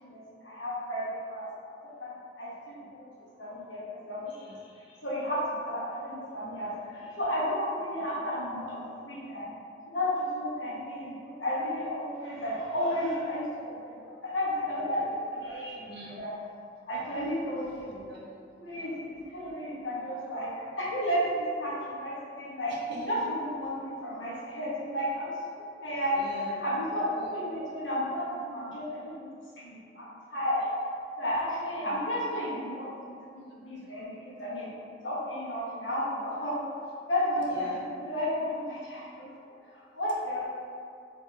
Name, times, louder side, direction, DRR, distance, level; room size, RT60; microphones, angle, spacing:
voice 1, 0.0-1.5 2.0-2.1 2.4-3.0 3.4-4.6 5.0-9.5 9.9-16.3 16.9-17.9 18.6-20.5 20.8-22.7 23.1-25.3 25.8-26.2 26.6-29.3 29.6-30.1 30.3-30.7 31.2-34.7 35.0-36.6 37.1-39.3 39.7-40.5, equal, 85° left, -8 dB, 0.9 m, -33 dB
voice 2, 15.9-16.2 17.9-18.2 22.9-23.2 26.1-26.6 27.1-27.6 31.8-32.0 37.4-37.8, equal, 60° right, -4 dB, 0.6 m, -43 dB
2.7 x 2.6 x 2.4 m, 2.3 s
head